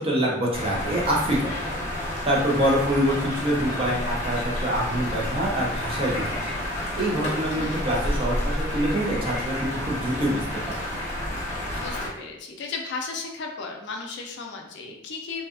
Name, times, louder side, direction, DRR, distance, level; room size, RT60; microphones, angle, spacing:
voice 1, 0.0-1.7 2.3-6.5 7.0-10.8, equal, 30° right, -3 dB, 0.6 m, -25 dB
sound 1, 0.5-12.1, left 1 dB, 35° left, 0.8 m, -30 dB
voice 2, 7.6-7.9 11.8-15.5, left 4 dB, 60° left, 2 dB, 0.4 m, -35 dB
2.6 x 2.3 x 2.4 m, 0.77 s
head